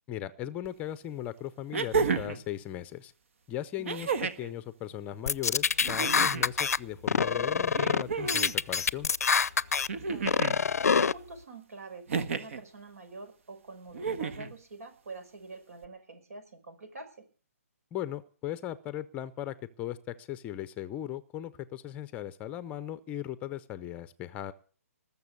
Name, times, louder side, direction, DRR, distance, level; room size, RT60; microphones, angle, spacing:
voice 1, 0.1-3.1 3.5-9.1 17.9-24.5, left 12 dB, 15° left, 14 dB, 0.6 m, -38 dB
sound 1, 0.6-0.7 1.7-2.4 3.8-4.5 5.8-6.5 7.7-8.5 9.9-10.6 12.1-12.6 13.9-14.5 15.8-15.9, right 5 dB, 60° right, 1.5 m, -31 dB
sound 2, 5.3-6.8 7.1-8.0 8.3-9.9 10.3-11.1, left 6 dB, 85° left, 0.6 m, -25 dB
voice 2, 9.9-10.5 10.8-17.3, right 3 dB, 75° right, 8 dB, 5.7 m, -46 dB
19.5 x 7.1 x 8.3 m, 0.41 s
hypercardioid pair, 155°, 8 cm